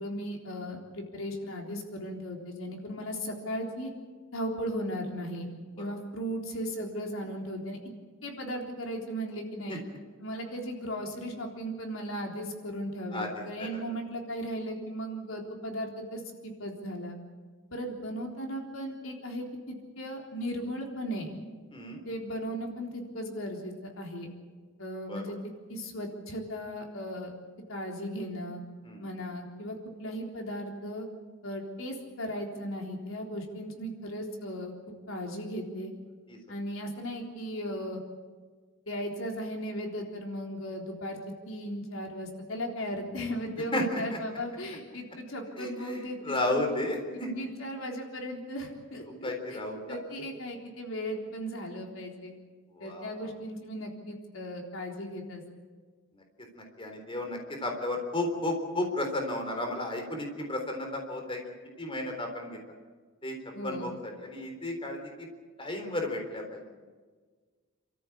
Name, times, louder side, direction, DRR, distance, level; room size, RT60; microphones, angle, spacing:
voice 1, 0.0-3.9 4.3-5.5 5.8-7.8 8.2-9.8 10.2-17.2 17.7-21.3 22.1-24.3 24.8-27.3 27.7-28.6 29.0-31.1 31.4-34.7 35.1-35.9 36.5-38.0 38.9-41.2 41.5-46.8 47.1-49.6 49.9-52.4 52.8-55.4 63.5-64.0, equal, 90° left, 1 dB, 3.8 m, -36 dB
voice 2, 21.7-22.0 25.1-25.2 28.8-29.0 36.3-36.4 43.7-44.0 45.6-46.0 46.3-47.3 49.2-50.0 52.8-53.1 56.1-56.2 56.5-61.4 61.8-62.6 63.2-63.4 63.6-63.9 64.2-65.3 65.6-66.7, left 1 dB, 25° left, 3 dB, 3.8 m, -33 dB
28.5 x 14.0 x 8.6 m, 1.5 s
head